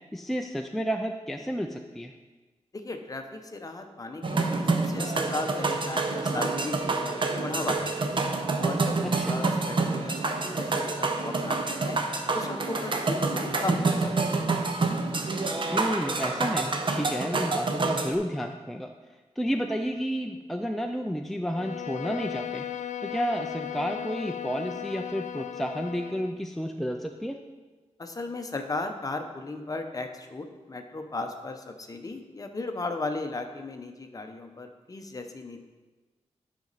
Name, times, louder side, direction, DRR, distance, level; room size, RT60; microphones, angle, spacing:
voice 1, 0.1-2.1 9.0-9.3 15.7-18.9 19.4-22.7 23.0-27.4, equal, ahead, 4 dB, 0.3 m, -31 dB
voice 2, 2.7-8.1 8.6-12.0 12.3-14.4 28.0-35.6, left 3 dB, 30° left, 5 dB, 0.7 m, -36 dB
sound 1, 4.2-18.2, right 3 dB, 45° right, 0.6 m, -27 dB
Bowed string instrument, 21.4-26.4, left 10 dB, 80° left, 0.4 m, -36 dB
10.0 x 5.2 x 4.0 m, 1.3 s
wide cardioid pair, 135°, 12 cm